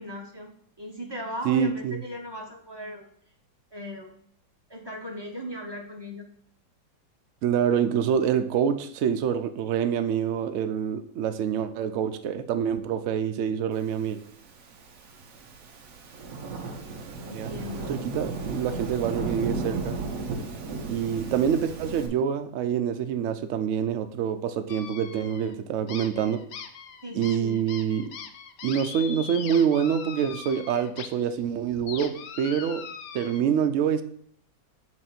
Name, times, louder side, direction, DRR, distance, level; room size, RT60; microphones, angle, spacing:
voice 1, 0.0-3.0 3.7-4.1 4.7-6.3 17.2-17.9 27.0-27.6, left 1 dB, 30° right, 0 dB, 0.4 m, -38 dB
voice 2, 1.5-2.0 7.4-14.2 17.3-17.5 17.9-20.0 20.9-26.4 27.1-28.1 28.6-32.8 33.1-34.0, right 8 dB, 75° right, 8 dB, 0.7 m, -26 dB
Thunderstorm / Rain, 14.4-22.1, right 3 dB, 55° right, 1.1 m, -34 dB
sound 1, 24.7-25.5 25.9-31.1 31.4-33.4, left 7 dB, 70° left, 0.9 m, -41 dB
7.7 x 2.6 x 5.8 m, 0.64 s
omnidirectional pair, 2.0 m